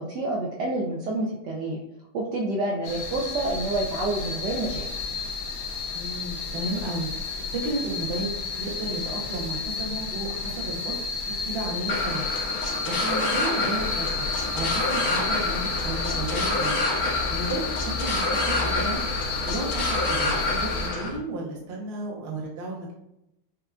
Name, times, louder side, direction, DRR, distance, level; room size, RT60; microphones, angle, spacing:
voice 1, 0.0-1.8 2.1-4.9, right 2 dB, 70° right, -2 dB, 1.0 m, -28 dB
sound 1, 2.8-20.9, left 4 dB, 65° left, 0.7 m, -32 dB
voice 2, 5.9-8.3 8.6-11.0 11.3-12.3 12.6-14.1 14.5-16.8 17.3-19.0 19.5-22.9, right 2 dB, 45° right, -3 dB, 0.8 m, -33 dB
sound 2, 11.9-21.1, left 2 dB, 85° left, 1.8 m, -28 dB
sound 3, 13.8-21.2, left 3 dB, 40° left, 1.0 m, -36 dB
6.4 x 2.4 x 2.3 m, 0.84 s
omnidirectional pair, 2.3 m